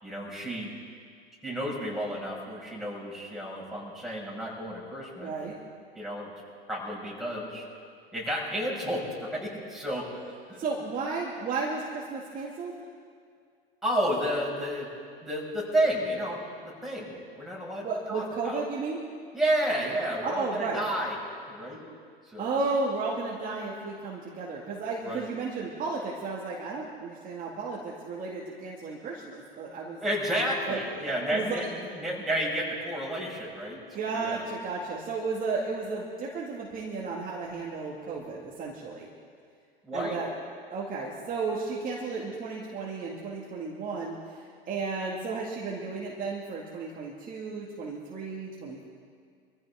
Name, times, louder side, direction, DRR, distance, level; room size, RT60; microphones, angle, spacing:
voice 1, 0.0-0.7 1.4-5.3 5.9-6.3 6.7-7.7 8.1-10.1 10.5-10.6 13.8-14.9 15.2-18.6 19.3-21.2 21.5-21.8 22.3-22.5 25.0-25.3 30.0-33.8 34.1-34.4 39.8-40.2, equal, ahead, -5 dB, 5.7 m, -31 dB
voice 2, 5.2-5.6 10.6-12.7 17.8-19.0 20.2-20.8 22.4-30.0 30.7-31.6 33.9-39.1 39.9-40.3 40.7-48.8, right 4 dB, 30° right, -4 dB, 2.2 m, -33 dB
25.0 x 15.0 x 3.6 m, 2.2 s
hypercardioid pair, 100°, 30 cm